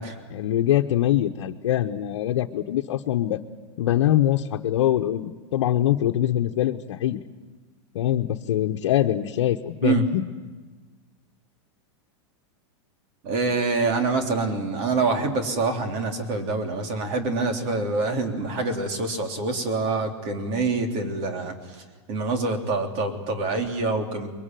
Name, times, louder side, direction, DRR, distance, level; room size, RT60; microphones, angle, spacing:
voice 1, 0.3-3.4 3.8-7.2 7.9-10.3, left 12 dB, 75° left, 3 dB, 1.1 m, -23 dB
voice 2, 13.2-21.5 22.1-24.3, right 3 dB, 45° right, 4 dB, 3.4 m, -26 dB
24.5 x 22.0 x 9.2 m, 1.3 s
supercardioid pair, 145°, 15 cm